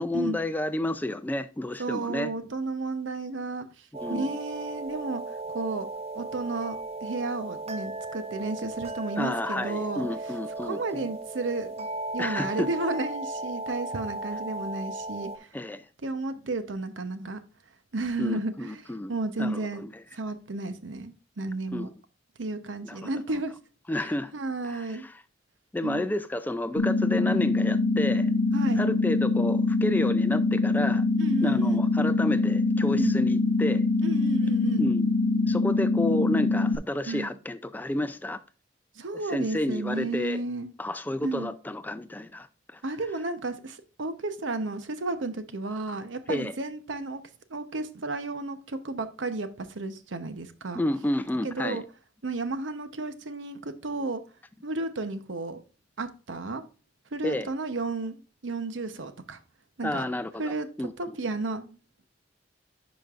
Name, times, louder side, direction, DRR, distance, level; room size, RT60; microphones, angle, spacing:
voice 1, 0.0-2.3 3.9-4.4 9.2-11.1 12.2-12.7 15.5-15.9 18.2-19.1 19.4-20.0 21.7-21.9 22.8-23.1 23.9-24.3 24.6-25.2 25.7-28.3 28.8-31.1 31.4-33.9 34.8-35.1 35.5-38.4 39.3-40.4 40.8-42.5 42.7-42.8 46.3-46.5 50.7-51.8 57.2-57.5 59.8-60.9, left 1 dB, 10° left, 0.3 m, -31 dB
voice 2, 1.8-3.7 4.1-5.2 5.5-5.9 6.1-10.1 10.6-11.9 12.1-15.5 16.0-17.4 17.9-18.8 19.1-19.8 20.1-21.9 22.4-23.5 24.0-25.1 25.8-26.1 28.5-28.9 31.2-31.9 33.0-33.2 34.0-34.9 37.1-37.3 39.0-40.7 41.2-41.5 42.8-47.2 47.5-50.8 51.4-51.8 52.2-54.2 54.6-55.6 56.0-56.6 57.1-59.4 59.8-60.1 60.4-60.7 61.0-61.8, right 3 dB, 85° right, 0.8 m, -32 dB
sound 1, 3.9-15.4, right 2 dB, 35° right, 0.6 m, -36 dB
sound 2, 26.8-36.8, left 3 dB, 80° left, 0.6 m, -24 dB
10.5 x 5.2 x 2.4 m
head